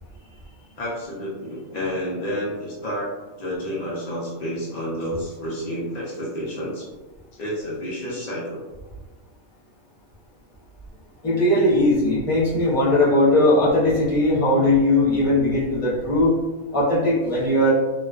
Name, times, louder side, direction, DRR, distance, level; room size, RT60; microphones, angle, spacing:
voice 1, 0.8-6.9 7.3-8.6, equal, 70° left, -6 dB, 0.4 m, -30 dB
voice 2, 11.2-16.3 16.7-17.7, left 1 dB, 30° left, -9 dB, 0.8 m, -19 dB
2.4 x 2.2 x 2.3 m, 1.2 s
omnidirectional pair, 1.4 m